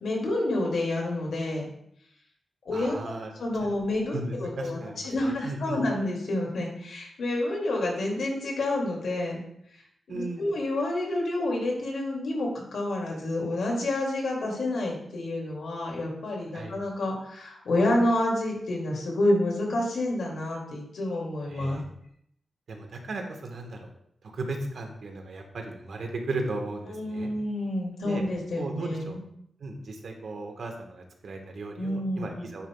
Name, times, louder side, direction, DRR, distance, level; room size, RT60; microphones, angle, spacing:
voice 1, 0.0-1.7 2.6-4.8 5.0-9.4 10.1-21.8 26.9-29.2 31.8-32.4, left 1 dB, 85° left, -2 dB, 2.3 m, -29 dB
voice 2, 2.7-3.3 3.6-3.7 4.1-5.1 5.4-5.8 10.1-10.5 16.5-16.7 21.5-21.8 22.7-23.9 24.3-27.3 28.0-28.2 28.6-29.1 29.6-32.7, right 2 dB, 70° right, 3 dB, 1.3 m, -36 dB
9.9 x 5.5 x 2.3 m, 0.71 s
wide cardioid pair, 90°, 0 cm